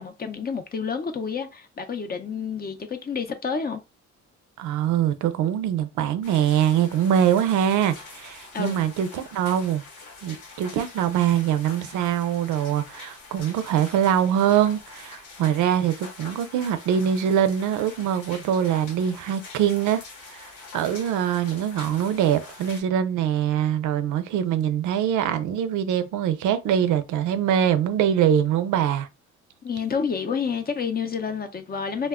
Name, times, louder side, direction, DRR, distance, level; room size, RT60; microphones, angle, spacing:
voice 1, 0.0-3.8 8.5-8.8 29.6-32.1, left 6 dB, 30° left, 0.5 m, -29 dB
voice 2, 4.6-9.8 10.2-20.0 20.3-29.1, right 9 dB, 80° right, 0.5 m, -23 dB
sound 1, 6.2-22.8, left 3 dB, 85° left, 1.1 m, -44 dB
2.2 x 2.1 x 3.5 m
cardioid pair, 90°, 30 cm